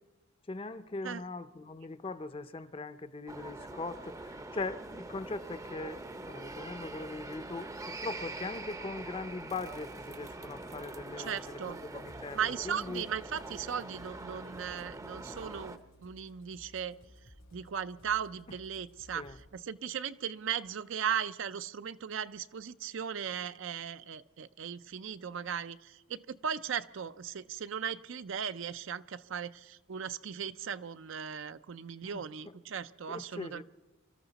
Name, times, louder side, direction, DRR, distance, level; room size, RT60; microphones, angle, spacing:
voice 1, 0.5-13.1 19.1-19.4 32.0-32.6 33.1-33.6, left 3 dB, 30° left, 0.6 m, -41 dB
sound 1, 3.3-15.8, right 2 dB, 15° right, 0.6 m, -44 dB
voice 2, 11.3-11.8 12.3-17.0 17.5-19.2 19.5-33.6, right 8 dB, 65° right, 0.5 m, -37 dB
sound 2, 12.1-19.5, equal, 90° left, 2.3 m, -57 dB
25.5 x 13.5 x 4.1 m
head